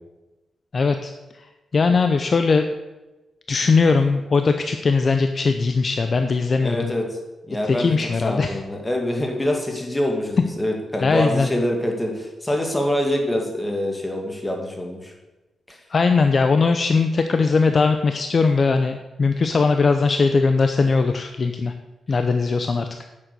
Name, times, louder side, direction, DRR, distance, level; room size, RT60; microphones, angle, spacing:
voice 1, 0.7-1.1 1.7-2.6 3.5-6.9 7.7-8.6 11.0-11.5 15.9-21.7 22.1-22.9, left 4 dB, 40° left, 7 dB, 0.6 m, -19 dB
voice 2, 6.6-7.2 7.5-8.0 8.2-15.1 15.7-15.8, left 1 dB, 10° left, 1 dB, 2.1 m, -25 dB
10.0 x 7.5 x 6.8 m, 1.1 s
wide cardioid pair, 140°, 0 cm